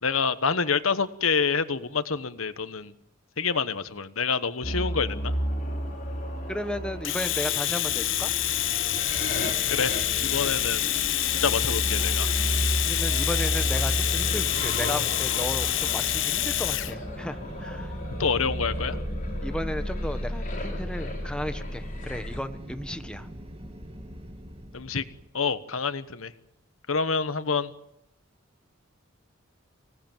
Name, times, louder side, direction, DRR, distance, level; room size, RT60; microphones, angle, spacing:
voice 1, 0.0-2.9 3.4-5.3 9.7-9.9 10.2-10.8 11.4-12.3 18.2-19.0 24.7-25.0 25.3-26.3 26.9-27.7, left 5 dB, 85° left, 13 dB, 1.2 m, -27 dB
sound 1, 4.6-22.4, equal, 40° left, 5.9 m, -32 dB
voice 2, 6.5-8.3 12.8-17.9 19.4-23.3, equal, 5° left, 8 dB, 1.4 m, -34 dB
Domestic sounds home sounds, 7.0-16.9, left 13 dB, 65° left, 1.0 m, -27 dB
sound 2, 7.8-25.3, equal, 30° right, 2.0 m, -42 dB
25.5 x 18.0 x 9.1 m, 0.84 s
head